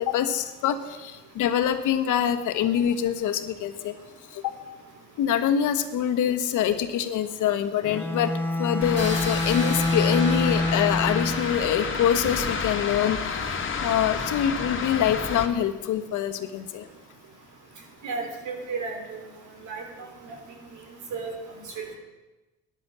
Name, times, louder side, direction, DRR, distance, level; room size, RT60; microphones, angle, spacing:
voice 1, 0.0-3.9 4.3-4.6 5.2-8.3 8.6-16.9, left 9 dB, 85° left, 9 dB, 1.3 m, -25 dB
Bowed string instrument, 7.8-11.6, left 2 dB, 5° left, 1.3 m, -26 dB
sound 1, 8.8-15.5, left 5 dB, 40° left, 2.0 m, -31 dB
sound 2, 9.0-14.8, left 1 dB, 25° left, 3.4 m, -37 dB
voice 2, 18.0-19.2 19.6-19.8 20.3-20.4 21.1-21.3 21.8-21.9, right 4 dB, 75° right, 3 dB, 3.7 m, -32 dB
13.5 x 10.5 x 7.5 m, 1.1 s
cardioid pair, 90°, 30 cm